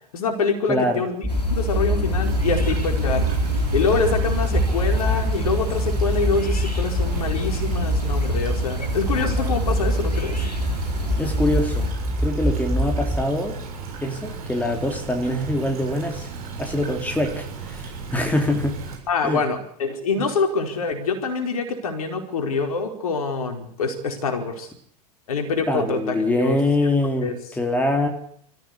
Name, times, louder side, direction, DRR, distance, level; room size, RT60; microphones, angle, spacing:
voice 1, 0.1-1.2 1.5-3.2 3.7-10.4 19.1-24.7 25.3-26.6 27.2-27.3, left 4 dB, 65° left, 4 dB, 4.7 m, -25 dB
voice 2, 0.7-1.0 11.2-11.9 12.2-13.6 14.0-16.3 16.6-18.8 19.2-19.4 20.2-20.3 25.7-28.1, left 1 dB, 10° left, 4 dB, 3.5 m, -24 dB
sound 1, 1.2-13.2, equal, 10° right, 2.4 m, -25 dB
sound 2, 1.3-11.9, left 2 dB, 90° left, 2.0 m, -29 dB
Stream / Trickle dribble, 2.2-19.0, right 4 dB, 65° right, 7.0 m, -35 dB
25.0 x 15.0 x 8.3 m, 0.66 s
figure-of-eight pair, 85°, 20 cm